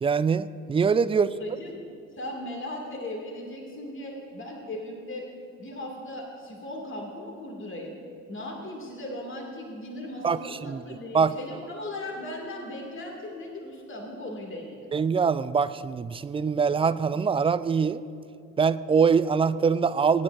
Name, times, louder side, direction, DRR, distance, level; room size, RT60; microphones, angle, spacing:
voice 1, 0.0-1.3 10.2-10.4 10.7-10.8 11.1-11.3 14.9-18.0 18.6-20.2, right 5 dB, 15° right, 15 dB, 0.3 m, -23 dB
voice 2, 1.1-1.8 2.2-5.3 5.6-8.0 8.3-14.9, left 1 dB, 30° left, 0 dB, 2.3 m, -37 dB
23.0 x 10.0 x 2.5 m, 2.4 s
hypercardioid pair, 45°, 38 cm